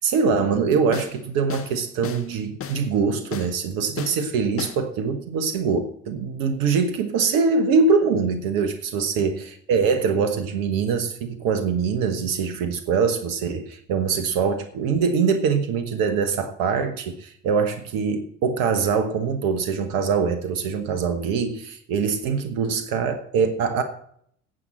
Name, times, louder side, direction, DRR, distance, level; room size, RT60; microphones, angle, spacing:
voice 1, 0.0-23.8, right 5 dB, 60° right, 9 dB, 1.2 m, -23 dB
sound 1, 0.9-1.2 1.5-1.7 2.0-2.3 2.6-2.8 3.3-3.5 4.0-4.2 4.6-4.8, left 7 dB, 35° left, 1.5 m, -34 dB
18.0 x 7.7 x 4.3 m, 0.67 s
figure-of-eight pair, 50°, 39 cm